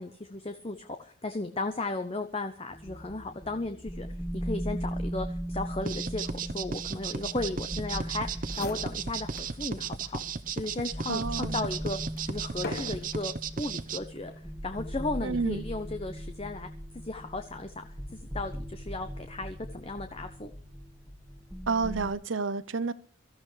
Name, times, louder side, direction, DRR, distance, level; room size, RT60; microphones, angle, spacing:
voice 1, 0.0-4.1 4.3-10.2 10.5-12.0 12.2-14.3 14.6-16.7 17.0-17.9 18.1-20.5, left 2 dB, 30° left, 7 dB, 0.8 m, -35 dB
sound 1, 2.7-22.1, equal, 5° left, 1.5 m, -39 dB
sound 2, 5.8-14.0, right 6 dB, 45° right, 0.7 m, -35 dB
sound 3, 8.1-8.2 8.4-9.6 10.0-10.1 10.8-13.4 14.2-14.5, left 3 dB, 55° left, 1.4 m, -43 dB
voice 2, 11.1-11.7 15.2-15.6 21.7-22.9, right 4 dB, 85° right, 16 dB, 0.8 m, -30 dB
24.0 x 14.0 x 3.2 m, 0.42 s
head